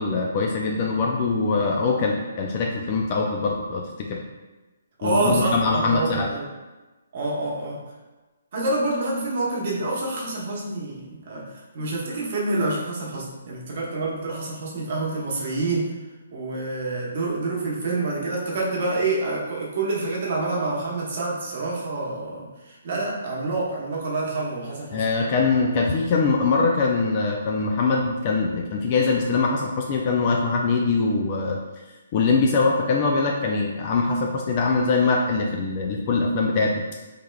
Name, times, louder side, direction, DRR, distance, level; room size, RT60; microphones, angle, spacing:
voice 1, 0.0-4.2 5.0-6.3 24.9-31.6 32.1-36.8, left 4 dB, 35° left, 0 dB, 0.3 m, -23 dB
voice 2, 5.0-6.5 7.1-7.8 8.5-15.9 16.3-25.0, right 2 dB, 45° right, -4 dB, 0.9 m, -27 dB
3.4 x 3.2 x 2.2 m, 1.2 s
hypercardioid pair, 155°, 0 cm